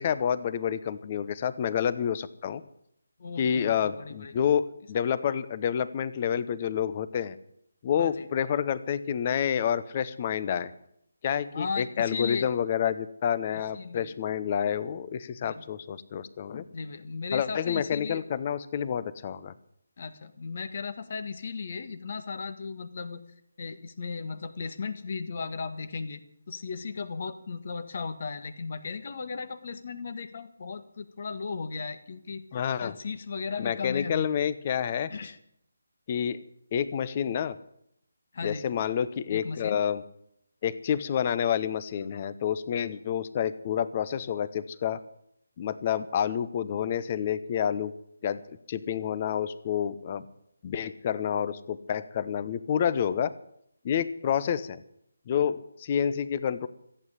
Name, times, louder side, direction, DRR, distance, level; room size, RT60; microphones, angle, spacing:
voice 1, 0.0-2.6 3.4-7.4 7.8-10.7 11.2-16.7 17.3-19.5 32.5-33.0 33.6-35.1 36.1-36.4 36.7-37.5 38.4-40.0 40.6-45.0 45.6-47.9 48.2-50.3 50.6-53.3 53.8-54.8 55.3-56.7, left 8 dB, 30° left, 15 dB, 0.9 m, -29 dB
voice 2, 3.2-4.3 8.0-8.3 11.5-12.5 13.5-14.1 15.4-15.6 16.7-18.2 20.0-23.2 23.6-26.2 26.5-32.4 32.8-34.3 35.1-35.4 38.3-38.6 39.3-39.8, left 4 dB, 50° left, 11 dB, 1.5 m, -36 dB
14.5 x 9.1 x 9.8 m, 0.72 s
figure-of-eight pair, 155°, 0 cm